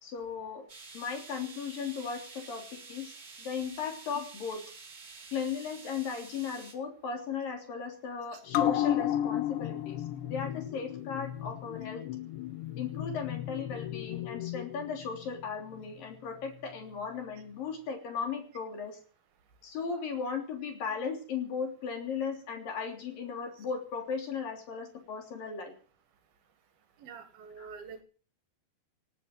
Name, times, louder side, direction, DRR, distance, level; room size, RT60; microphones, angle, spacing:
voice 1, 0.0-0.6 0.9-2.6 2.9-4.6 5.3-12.0 12.8-19.0 19.6-25.7 27.6-27.7, left 6 dB, 55° left, 4 dB, 4.9 m, -37 dB
sound 1, 0.7-6.7, right 4 dB, 30° right, 2.1 m, -49 dB
sound 2, 8.5-15.4 15.8-15.9, left 11 dB, 80° left, 3.2 m, -33 dB
voice 2, 27.0-28.0, right 5 dB, 65° right, 9 dB, 3.2 m, -46 dB
18.0 x 9.4 x 7.8 m, 0.40 s
omnidirectional pair, 5.0 m